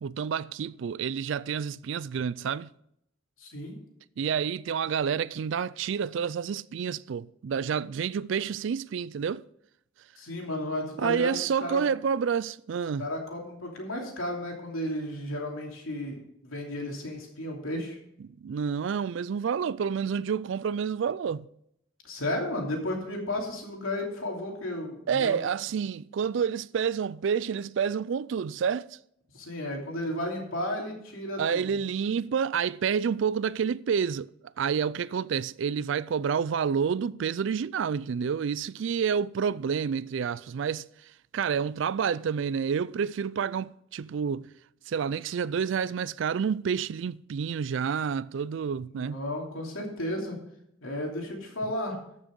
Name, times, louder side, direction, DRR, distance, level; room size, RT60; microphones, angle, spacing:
voice 1, 0.0-2.7 4.2-9.4 11.0-13.1 18.2-21.5 25.1-29.0 31.4-34.3 34.6-40.9 41.3-44.5 44.9-49.2, right 7 dB, 60° right, 0.3 m, -29 dB
voice 2, 3.4-3.8 10.2-11.8 13.0-18.0 22.0-25.4 29.3-31.6 48.9-50.4 50.8-52.0, left 1 dB, 90° left, 2.9 m, -33 dB
13.5 x 6.3 x 5.3 m
head